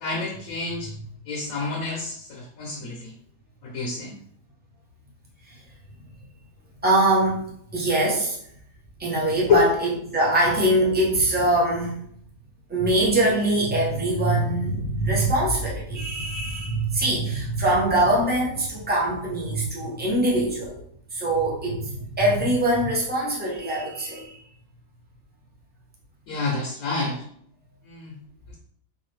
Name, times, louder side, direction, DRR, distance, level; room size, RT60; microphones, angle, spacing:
voice 1, 0.0-0.9 1.3-3.1 3.6-4.1 9.5-9.6 26.3-27.2 27.9-28.2, left 4 dB, 65° left, 0 dB, 1.0 m, -27 dB
voice 2, 6.8-8.4 9.0-12.0 12.7-20.8 21.1-24.4, right 1 dB, 10° right, -4 dB, 0.4 m, -23 dB
3.8 x 2.6 x 3.2 m, 0.67 s
omnidirectional pair, 1.8 m